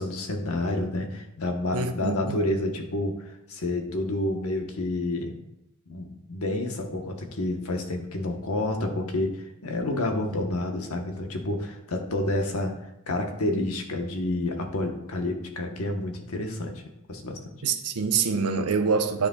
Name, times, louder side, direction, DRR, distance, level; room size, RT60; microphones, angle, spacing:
voice 1, 0.0-5.3 5.9-12.8 13.1-16.8 17.1-17.4, left 1 dB, 80° left, 1.1 m, -29 dB
voice 2, 1.7-2.4 17.6-19.3, right 5 dB, 90° right, 0.8 m, -25 dB
12.0 x 4.9 x 2.3 m
head